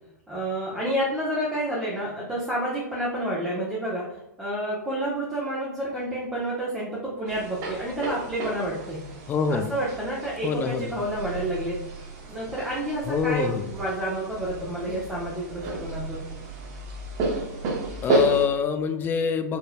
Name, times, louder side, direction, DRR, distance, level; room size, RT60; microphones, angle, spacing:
voice 1, 0.3-4.1 4.4-9.0 9.5-11.8 12.2-16.3, right 1 dB, 5° right, -6 dB, 1.0 m, -29 dB
sound 1, 7.3-18.5, right 2 dB, 35° right, 1.1 m, -32 dB
voice 2, 9.3-9.7 10.4-10.9 13.1-13.6 18.0-19.6, left 6 dB, 20° left, 9 dB, 0.4 m, -25 dB
4.7 x 3.1 x 2.3 m, 0.90 s
figure-of-eight pair, 100°, 10 cm